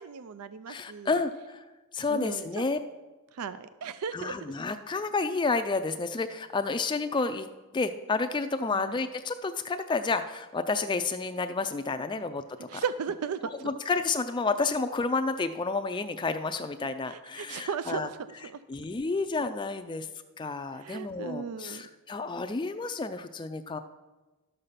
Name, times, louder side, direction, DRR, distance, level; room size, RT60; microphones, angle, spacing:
voice 1, 0.0-1.2 2.1-2.6 3.3-4.4 8.7-9.0 12.7-13.5 17.1-18.2 18.4-18.6 19.9-20.1 20.7-21.9, right 6 dB, 85° right, 13 dB, 0.4 m, -36 dB
voice 2, 0.7-1.6 1.9-2.8 4.1-7.5 7.7-12.8 13.6-18.1 18.7-20.1 20.4-23.8, left 4 dB, 20° left, 9 dB, 0.3 m, -30 dB
12.5 x 6.7 x 5.6 m, 1.2 s
head